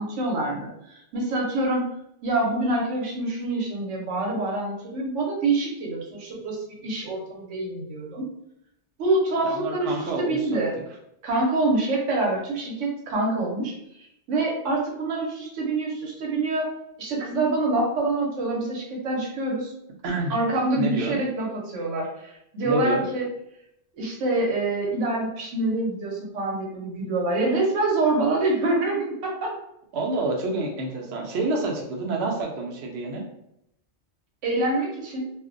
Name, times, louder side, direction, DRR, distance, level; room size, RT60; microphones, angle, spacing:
voice 1, 0.0-1.8 2.2-8.3 9.0-10.7 11.2-13.7 14.3-16.7 17.0-19.7 20.3-23.3 23.9-29.5 34.4-35.3, right 2 dB, 85° right, -2 dB, 1.0 m, -26 dB
voice 2, 9.4-10.7 20.0-20.3 20.8-21.2 22.6-23.1 29.9-33.2, right 2 dB, 65° right, 0 dB, 0.7 m, -28 dB
2.4 x 2.0 x 2.5 m, 0.80 s
omnidirectional pair, 1.2 m